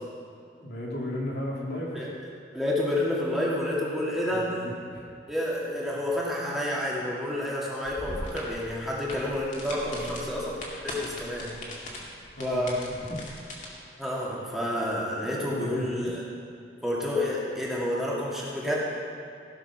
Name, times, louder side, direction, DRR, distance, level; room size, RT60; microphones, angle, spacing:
voice 1, 0.6-2.1 4.3-5.1 9.8-10.2 12.4-12.8 13.1-13.2 15.2-16.1, left 1 dB, 75° left, -3 dB, 2.5 m, -35 dB
voice 2, 2.5-4.5 5.3-10.6 10.8-11.5 12.4-12.8 14.0-16.1 16.8-18.9, left 1 dB, ahead, -6 dB, 2.2 m, -29 dB
sound 1, 7.8-13.7, left 1 dB, 45° left, 2.2 m, -40 dB
16.0 x 6.8 x 6.0 m, 2.5 s
head